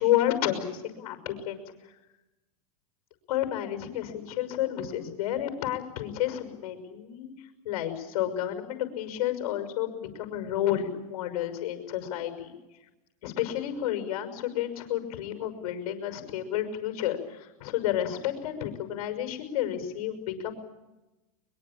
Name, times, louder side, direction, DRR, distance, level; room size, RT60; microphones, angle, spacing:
voice 1, 0.0-1.6 3.3-7.3 7.6-12.5 13.2-20.5, left 11 dB, 70° left, 8 dB, 6.2 m, -30 dB
23.0 x 22.5 x 8.9 m, 1.0 s
hypercardioid pair, 115°, 19 cm